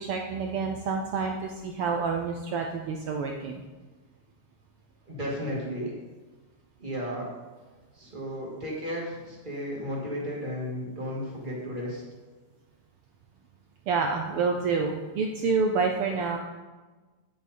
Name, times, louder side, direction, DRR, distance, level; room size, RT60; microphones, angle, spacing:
voice 1, 0.0-3.6 13.9-16.4, right 4 dB, 75° right, 2 dB, 1.3 m, -28 dB
voice 2, 5.1-5.9 6.8-7.3 7.9-12.0, equal, 20° right, -4 dB, 2.2 m, -34 dB
9.8 x 8.5 x 4.3 m, 1.2 s
omnidirectional pair, 3.3 m